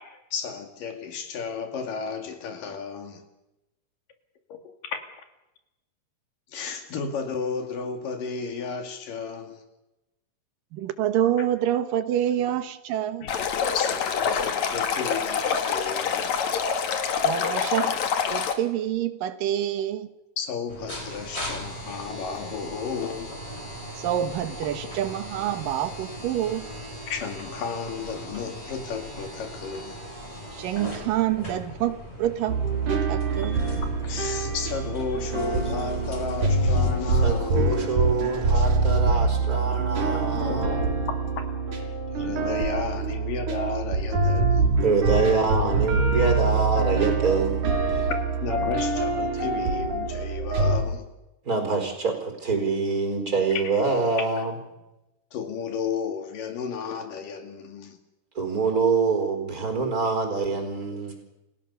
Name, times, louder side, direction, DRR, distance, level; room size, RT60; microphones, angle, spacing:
voice 1, 0.1-3.2 4.5-4.6 6.5-9.6 13.2-13.3 13.7-16.4 20.4-23.4 27.1-30.0 33.4-33.5 34.0-37.8 38.5-38.7 39.8-40.9 41.2-41.5 42.2-44.6 48.4-51.1 53.5-53.6 55.3-58.0 59.8-60.1, left 6 dB, 80° left, 6 dB, 4.0 m, -33 dB
voice 2, 10.7-13.2 17.2-17.9 18.3-20.1 24.0-26.7 30.5-32.6 32.9-33.6, right 11 dB, 85° right, 11 dB, 2.9 m, -27 dB
Stream, 13.3-18.5, left 6 dB, 60° left, 2.9 m, -26 dB
sound 1, 20.7-38.9, equal, 20° left, 5.1 m, -39 dB
sound 2, 32.5-50.8, right 3 dB, 70° right, 5.1 m, -25 dB
voice 3, 37.2-41.1 44.8-48.1 51.4-54.5 58.3-61.1, right 4 dB, 25° right, 5 dB, 4.7 m, -25 dB
29.0 x 16.5 x 6.9 m, 0.95 s
omnidirectional pair, 3.8 m